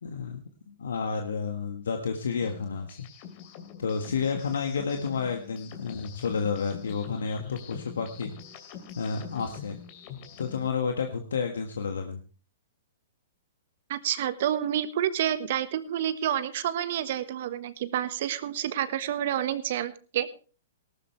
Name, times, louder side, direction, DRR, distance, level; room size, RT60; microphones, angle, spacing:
voice 1, 0.0-3.1 3.8-8.3 9.0-9.8 10.4-12.2, left 5 dB, 75° left, 5 dB, 1.5 m, -31 dB
sound 1, 2.4-10.7, left 8 dB, 45° left, 3.0 m, -44 dB
voice 2, 13.9-20.3, right 11 dB, 55° right, 13 dB, 1.3 m, -29 dB
18.0 x 12.5 x 3.3 m, 0.36 s
hypercardioid pair, 115°, 0 cm